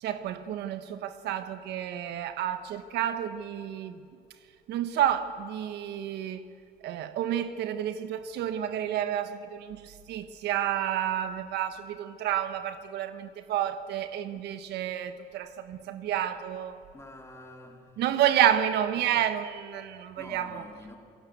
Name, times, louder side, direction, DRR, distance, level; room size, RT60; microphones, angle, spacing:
voice 1, 0.0-4.0 4.7-6.4 6.8-16.8 18.0-20.6, right 11 dB, 80° right, 1.3 m, -30 dB
voice 2, 16.9-18.0 20.2-21.0, left 2 dB, 15° left, 4.0 m, -47 dB
28.0 x 17.0 x 8.1 m
cardioid pair, 110°, 17 cm